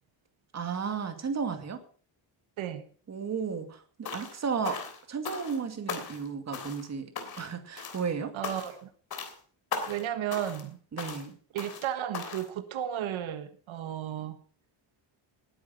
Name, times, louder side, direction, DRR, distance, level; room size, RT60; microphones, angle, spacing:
voice 1, 0.5-1.8 3.1-7.1 7.4-8.3 10.9-11.4, right 6 dB, 35° right, 7 dB, 2.3 m, -34 dB
sound 1, 4.0-4.4 4.6-5.6 5.9-6.3 6.5-6.9 7.2-7.5 7.8-8.1 8.4-8.8 9.1-9.4 9.7-10.0 10.3-10.7 11.0-11.3 11.6-11.9 12.1-12.5, left 5 dB, 50° left, 3.3 m, -38 dB
voice 2, 8.3-8.9 9.9-10.8 11.5-14.4, right 11 dB, 85° right, 9 dB, 1.6 m, -34 dB
19.5 x 9.7 x 5.7 m, 0.43 s
cardioid pair, 175°, 46 cm